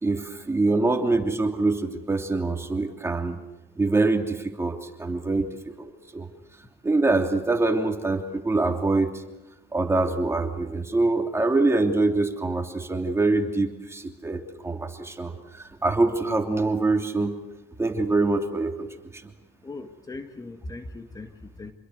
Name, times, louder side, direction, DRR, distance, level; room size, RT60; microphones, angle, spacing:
voice 1, 0.0-3.4 3.8-5.9 6.1-6.3 6.8-9.2 9.7-17.3 17.8-18.9, right 3 dB, 15° right, 4 dB, 3.0 m, -24 dB
voice 2, 19.6-21.7, left 2 dB, 20° left, 6 dB, 1.9 m, -39 dB
27.5 x 21.5 x 8.0 m, 1.1 s
cardioid pair, 110°, 17 cm